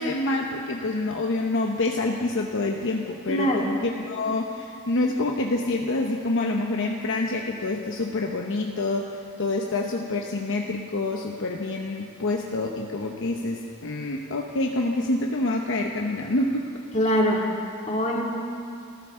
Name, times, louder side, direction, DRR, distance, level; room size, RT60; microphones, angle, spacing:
voice 1, 0.0-16.7, left 2 dB, 65° left, 1 dB, 0.9 m, -27 dB
voice 2, 3.3-3.6 16.9-17.4 17.9-18.2, equal, 35° left, -2 dB, 2.5 m, -22 dB
27.0 x 14.5 x 3.7 m, 2.4 s
head